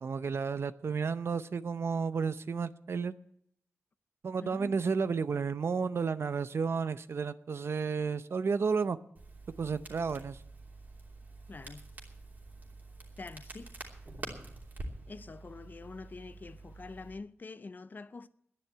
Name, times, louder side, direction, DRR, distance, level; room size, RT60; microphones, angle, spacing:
voice 1, 0.0-3.1 4.2-9.0 9.6-10.4, right 5 dB, 60° right, 0.6 m, -32 dB
voice 2, 4.4-4.8 11.5-11.9 13.2-13.8 15.1-18.3, left 3 dB, 40° left, 0.5 m, -46 dB
Crackle, 9.1-17.1, right 2 dB, 35° right, 2.9 m, -47 dB
11.0 x 10.0 x 8.9 m
wide cardioid pair, 135°, 5 cm